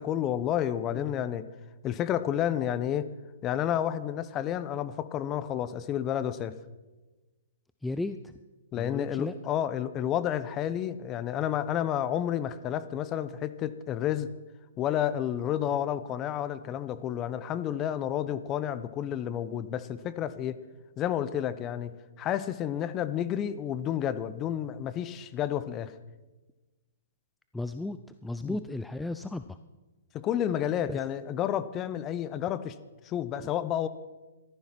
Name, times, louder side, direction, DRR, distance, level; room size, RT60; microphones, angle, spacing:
voice 1, 0.0-1.5 1.8-3.1 3.4-6.6 8.7-14.3 14.8-20.6 21.0-25.9 28.4-28.6 30.1-32.7 33.0-33.9, left 10 dB, 25° left, 14 dB, 0.9 m, -30 dB
voice 2, 7.8-8.3 8.8-9.3 27.5-29.6 30.9-31.0, left 2 dB, 5° left, 10 dB, 0.5 m, -35 dB
14.5 x 12.5 x 6.0 m, 1.2 s
hypercardioid pair, 135°, 0 cm